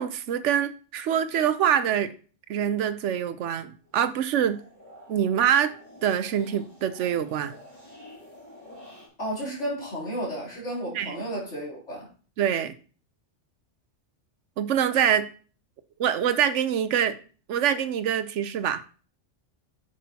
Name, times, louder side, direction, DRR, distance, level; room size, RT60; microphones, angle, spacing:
voice 1, 0.0-2.1 2.5-4.6 5.1-5.7 6.0-7.5 10.9-11.2 12.4-12.7 14.6-15.3 16.0-17.1 17.5-18.8, right 9 dB, 75° right, 1.0 m, -25 dB
sound 1, 3.8-9.1, left 1 dB, 40° left, 4.8 m, -49 dB
voice 2, 9.2-12.1, equal, 70° left, 3.7 m, -32 dB
9.2 x 6.5 x 2.9 m
omnidirectional pair, 1.3 m